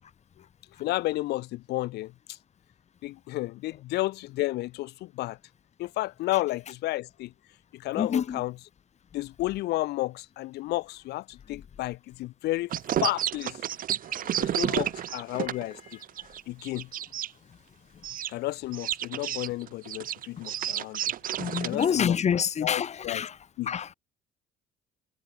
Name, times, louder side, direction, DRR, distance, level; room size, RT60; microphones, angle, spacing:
voice 1, 0.8-2.4 3.0-5.4 5.8-7.3 7.7-8.5 9.1-12.7 13.0-13.7 14.4-15.8 16.5-16.9 18.3-21.0 21.6-23.3 23.6-23.7, left 17 dB, 80° left, 1.7 m, -32 dB
voice 2, 7.9-8.4 14.2-14.6 21.4-23.3 23.7-23.9, left 7 dB, 40° left, 2.8 m, -28 dB
sound 1, 12.7-17.3 18.0-18.3 18.7-21.9, right 11 dB, 55° right, 1.4 m, -31 dB
cardioid pair, 110°, 17 cm